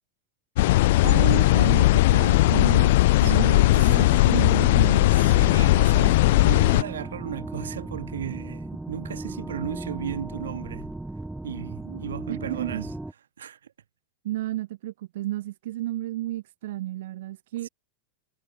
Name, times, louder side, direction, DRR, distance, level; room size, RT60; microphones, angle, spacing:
sound 1, 0.6-6.8, left 18 dB, 65° left, 0.4 m, -18 dB
voice 1, 1.0-5.2 12.3-12.8 14.2-17.7, right 15 dB, 70° right, 0.7 m, -32 dB
voice 2, 3.2-3.9 5.0-10.9 11.4-12.9 13.4-13.7 17.6-17.7, right 9 dB, 90° right, 1.7 m, -36 dB
sound 2, 4.8-13.1, right 2 dB, 5° right, 0.6 m, -36 dB
hypercardioid pair, 110°, 0 cm